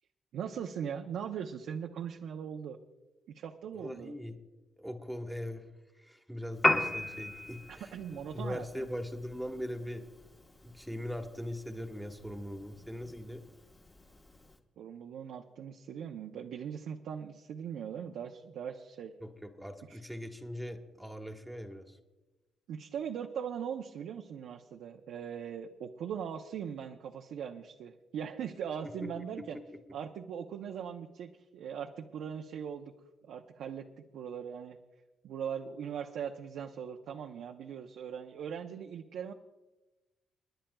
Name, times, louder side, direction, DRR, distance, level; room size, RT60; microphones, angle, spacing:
voice 1, 0.3-2.8 3.3-4.1 7.7-8.9 14.8-19.1 19.9-20.0 22.7-29.6 29.9-32.9 33.3-33.9 34.1-34.8 35.2-39.3, right 8 dB, 75° right, 3 dB, 0.7 m, -40 dB
voice 2, 3.7-4.4 4.8-5.7 5.9-10.1 10.6-13.4 19.2-22.0 28.8-29.1 29.4-29.5, equal, ahead, 5 dB, 1.3 m, -41 dB
Piano, 6.5-14.6, left 1 dB, 20° left, 1.2 m, -37 dB
29.5 x 10.0 x 2.3 m, 1.1 s
cardioid pair, 90°, 0 cm